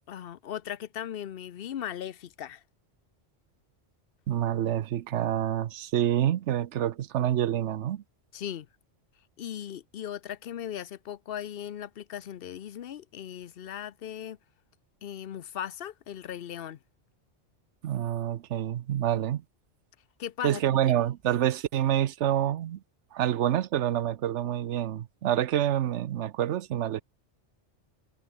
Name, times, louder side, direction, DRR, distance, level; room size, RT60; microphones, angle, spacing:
voice 1, 0.1-2.6 8.3-8.7 9.4-14.4 15.0-16.8 20.2-20.9, left 10 dB, 60° left, 0.8 m, -38 dB
voice 2, 4.3-8.0 17.8-19.4 20.4-22.8 23.1-27.0, right 11 dB, 80° right, 1.0 m, -27 dB
omnidirectional pair, 1.2 m